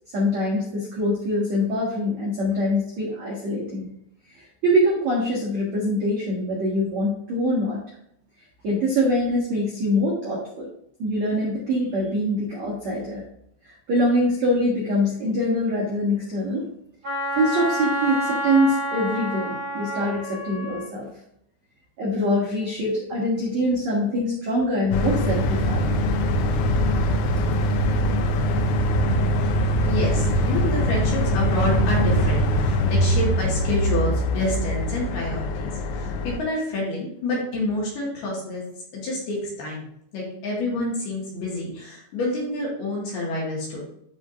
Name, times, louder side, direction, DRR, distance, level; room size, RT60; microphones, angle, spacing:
voice 1, 0.1-3.9 4.3-7.8 8.6-10.7 11.0-13.2 13.6-16.6 17.3-21.1 22.0-26.0, equal, 70° right, -5 dB, 1.6 m, -24 dB
Wind instrument woodwind instrument, 17.0-20.9, equal, 45° right, 1.7 m, -29 dB
sound 1, 24.9-36.4, equal, 85° left, 3.2 m, -22 dB
voice 2, 29.8-38.6 38.9-39.9 40.1-43.8, left 2 dB, 60° left, -4 dB, 3.3 m, -28 dB
13.5 x 5.0 x 2.5 m, 0.74 s
omnidirectional pair, 6.0 m